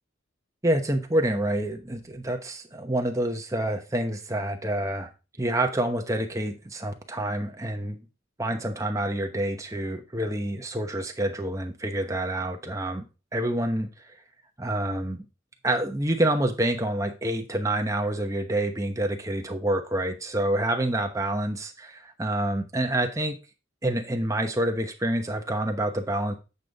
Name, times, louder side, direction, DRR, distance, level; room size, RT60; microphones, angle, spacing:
voice 1, 0.6-5.1 5.4-8.0 8.4-13.1 13.3-13.9 14.6-15.3 15.6-23.4 23.8-26.4, right 1 dB, 15° right, 0.9 m, -27 dB
8.4 x 5.1 x 4.0 m
head